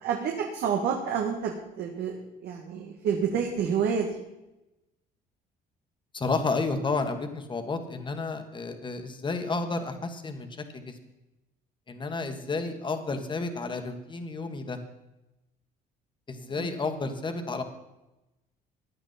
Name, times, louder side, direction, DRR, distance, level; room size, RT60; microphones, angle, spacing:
voice 1, 0.0-4.2 16.4-16.7, right 7 dB, 75° right, 1 dB, 1.8 m, -29 dB
voice 2, 6.1-10.5 10.7-10.9 11.9-14.8 16.3-17.6, left 3 dB, 30° left, 6 dB, 1.7 m, -31 dB
16.0 x 10.0 x 4.2 m, 0.97 s
cardioid pair, 110°, 17 cm